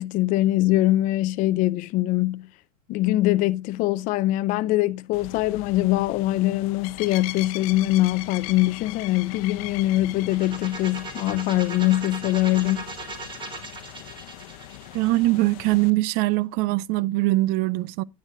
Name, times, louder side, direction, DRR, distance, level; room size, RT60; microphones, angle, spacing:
voice 1, 0.0-2.5 2.9-12.9, left 16 dB, 45° left, 0.5 m, -23 dB
sound 1, 5.1-15.9, left 17 dB, 65° left, 0.8 m, -40 dB
sound 2, 5.8-14.1, equal, 90° right, 3.7 m, -52 dB
sound 3, 10.2-16.0, right 2 dB, 25° right, 2.1 m, -38 dB
voice 2, 14.9-18.0, right 19 dB, 50° right, 0.5 m, -22 dB
9.8 x 9.7 x 2.6 m
supercardioid pair, 115°, 19 cm